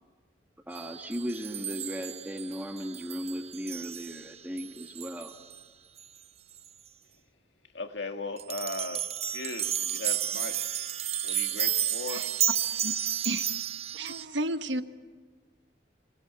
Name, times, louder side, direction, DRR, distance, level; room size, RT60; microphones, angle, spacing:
voice 1, 0.7-5.3, equal, 10° right, 1.5 m, -36 dB
sound 1, 0.7-5.6 6.0-6.1 6.6-6.7 8.4-14.2, right 10 dB, 35° right, 0.7 m, -32 dB
voice 2, 7.7-9.0 9.3-10.7 11.2-12.3, left 3 dB, 80° left, 1.9 m, -37 dB
voice 3, 13.2-13.6 13.9-14.8, right 2 dB, 85° right, 1.2 m, -32 dB
26.0 x 20.0 x 8.1 m
head